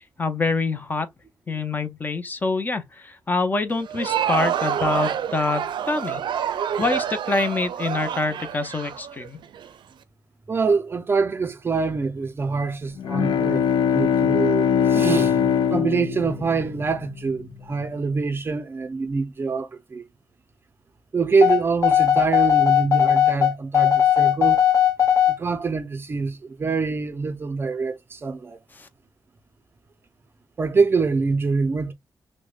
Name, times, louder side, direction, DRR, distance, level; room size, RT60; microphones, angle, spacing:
voice 1, 0.2-1.1 1.5-6.2 6.8-9.4 28.7-28.9, left 3 dB, 25° left, 0.5 m, -25 dB
Crowd, 3.8-9.7, right 9 dB, 85° right, 0.5 m, -27 dB
voice 2, 10.5-13.6 13.9-20.0 21.1-24.6 25.4-28.6 30.6-31.9, right 4 dB, 30° right, 0.5 m, -25 dB
Bowed string instrument, 13.0-17.5, left 8 dB, 85° left, 0.4 m, -22 dB
sound 1, 21.4-25.4, left 10 dB, 40° left, 1.0 m, -18 dB
6.1 x 2.1 x 2.3 m
wide cardioid pair, 180°, 8 cm